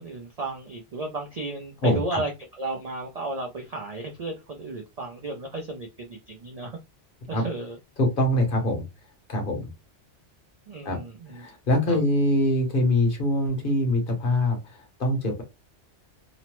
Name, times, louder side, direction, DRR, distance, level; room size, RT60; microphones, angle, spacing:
voice 1, 0.0-2.3 2.6-6.8 7.3-7.8 10.7-11.5 11.9-12.0, right 2 dB, 55° right, 0.4 m, -34 dB
voice 2, 1.8-2.2 7.3-7.5 8.0-8.9 9.3-9.7 10.8-11.0 11.3-15.4, left 1 dB, 50° left, 1.0 m, -24 dB
2.9 x 2.0 x 2.9 m
omnidirectional pair, 1.2 m